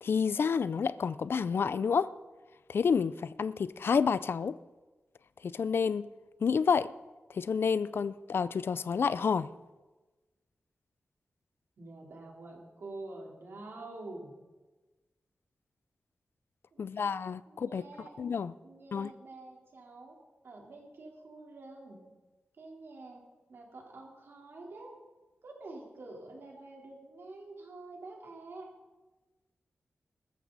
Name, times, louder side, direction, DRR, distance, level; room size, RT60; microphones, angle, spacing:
voice 1, 0.0-2.1 2.7-4.6 5.4-6.1 6.4-6.9 7.3-9.5 16.8-17.8 18.2-18.5 18.9-19.1, left 6 dB, 70° left, 0.4 m, -29 dB
voice 2, 11.8-14.3 16.7-17.1 17.5-18.1 18.6-20.2 20.4-22.0 22.6-23.2 23.5-24.9 25.4-28.7, right 2 dB, 75° right, 3.7 m, -47 dB
21.0 x 13.5 x 4.1 m
wide cardioid pair, 150°, 4 cm